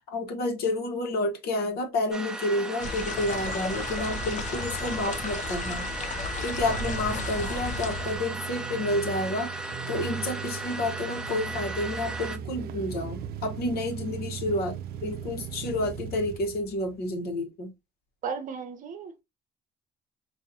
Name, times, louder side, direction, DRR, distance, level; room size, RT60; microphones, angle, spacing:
voice 1, 0.1-5.9 6.4-9.5 9.9-17.7, left 2 dB, 70° left, 1.3 m, -30 dB
sound 1, 2.1-12.4, right 3 dB, 5° right, 0.7 m, -36 dB
sound 2, 2.8-8.2, left 4 dB, 45° left, 0.7 m, -34 dB
sound 3, 3.2-17.3, right 8 dB, 70° right, 0.5 m, -40 dB
voice 2, 18.2-19.2, right 6 dB, 50° right, 0.8 m, -35 dB
3.9 x 2.7 x 2.7 m
cardioid pair, 110°, 17 cm